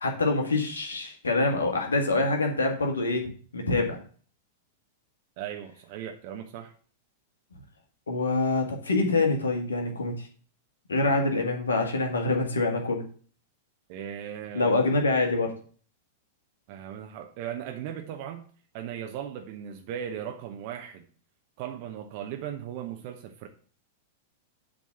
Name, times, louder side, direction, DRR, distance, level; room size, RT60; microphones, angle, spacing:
voice 1, 0.0-4.0 8.1-10.3 10.9-13.0 14.5-15.5, left 2 dB, 85° left, 3 dB, 1.9 m, -25 dB
voice 2, 5.4-6.7 13.9-14.8 16.7-18.4 18.7-21.0 21.6-23.5, right 9 dB, 50° right, 5 dB, 1.0 m, -37 dB
7.9 x 4.0 x 6.7 m, 0.43 s
hypercardioid pair, 100°, 0 cm